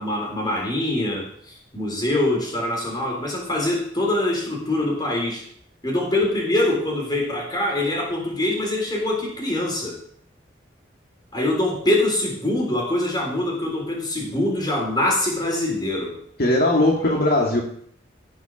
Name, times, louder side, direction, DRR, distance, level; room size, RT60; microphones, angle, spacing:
voice 1, 0.0-5.4 5.8-10.0 11.3-16.2, left 1 dB, 20° left, -1 dB, 3.8 m, -24 dB
voice 2, 16.4-17.6, left 1 dB, 55° left, -1 dB, 2.0 m, -19 dB
16.0 x 6.1 x 6.2 m, 0.63 s
head